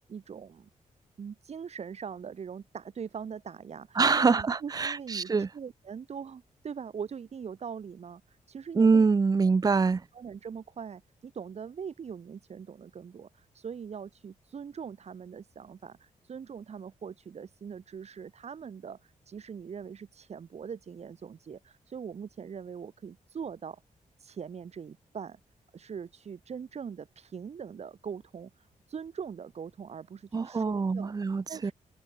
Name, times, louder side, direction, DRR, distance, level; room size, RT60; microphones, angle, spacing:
voice 1, 0.1-0.7 1.2-9.1 10.1-23.8 24.2-25.4 25.7-31.1 31.5-31.7, right 7 dB, 55° right, 6.2 m, -42 dB
voice 2, 4.0-5.5 8.7-10.0 30.3-31.7, right 4 dB, 30° right, 1.0 m, -24 dB
open air
wide cardioid pair, 125°, 13 cm